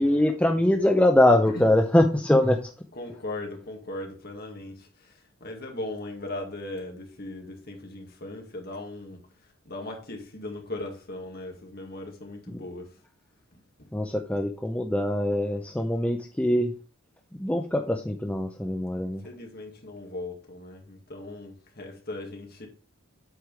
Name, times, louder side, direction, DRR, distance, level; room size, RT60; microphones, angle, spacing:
voice 1, 0.0-2.7 12.5-12.6 13.9-16.7 17.4-19.2, left 1 dB, 5° left, 0.5 m, -23 dB
voice 2, 2.9-9.3 9.7-13.0 13.5-13.9 19.0-22.7, left 2 dB, 45° left, 2.0 m, -38 dB
8.2 x 4.9 x 4.7 m
head